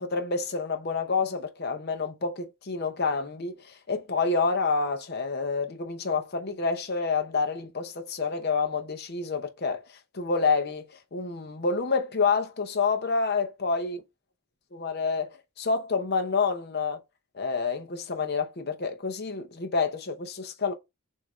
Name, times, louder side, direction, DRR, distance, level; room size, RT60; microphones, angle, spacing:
voice 1, 0.0-14.0 14.7-17.0 17.3-20.7, left 4 dB, 45° left, 0.7 m, -28 dB
6.5 x 2.6 x 3.0 m
head